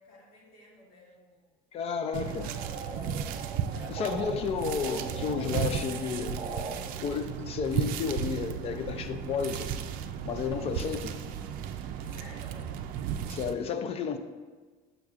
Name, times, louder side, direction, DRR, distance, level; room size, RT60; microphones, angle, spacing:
voice 1, 0.0-1.6 2.0-2.9 3.7-4.2 12.0-12.7, left 2 dB, 65° left, -3 dB, 1.8 m, -53 dB
voice 2, 1.7-2.5 3.9-6.4 7.0-9.7 10.2-11.1 13.2-14.2, left 6 dB, 40° left, 10 dB, 0.4 m, -32 dB
sound 1, 2.1-13.5, right 8 dB, 60° right, 0.4 m, -35 dB
sound 2, 2.2-4.3 4.7-6.7, right 4 dB, 40° right, 1.0 m, -41 dB
6.4 x 6.3 x 2.4 m, 1.4 s
cardioid pair, 135°, 16 cm